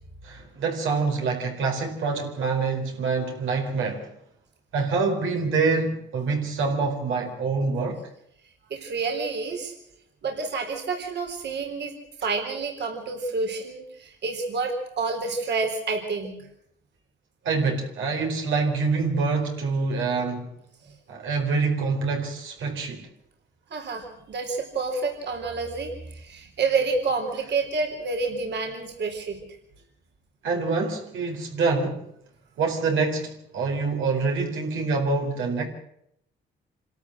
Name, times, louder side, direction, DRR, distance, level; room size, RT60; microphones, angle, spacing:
voice 1, 0.2-4.1 4.7-8.1 17.4-20.5 21.1-23.1 30.4-32.0 32.6-35.6, right 4 dB, 80° right, 2 dB, 4.4 m, -26 dB
voice 2, 8.7-9.7 10.2-11.9 12.2-16.5 23.7-29.4, right 4 dB, 60° right, 3 dB, 4.0 m, -29 dB
26.5 x 13.0 x 7.9 m, 0.74 s
cardioid pair, 90°, 20 cm